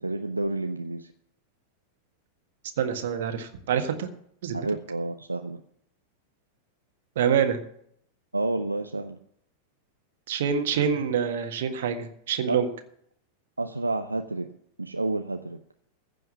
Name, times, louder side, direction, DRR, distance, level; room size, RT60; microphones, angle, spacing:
voice 1, 0.0-1.1 4.5-5.6 8.3-9.2 12.5-12.6 13.6-14.5 14.8-15.6, right 2 dB, 85° right, 6 dB, 0.7 m, -30 dB
voice 2, 2.8-4.1 4.4-4.6 7.1-7.6 10.3-12.7, right 7 dB, 55° right, 6 dB, 1.7 m, -26 dB
15.5 x 5.6 x 8.2 m, 0.69 s
figure-of-eight pair, 90°, 0 cm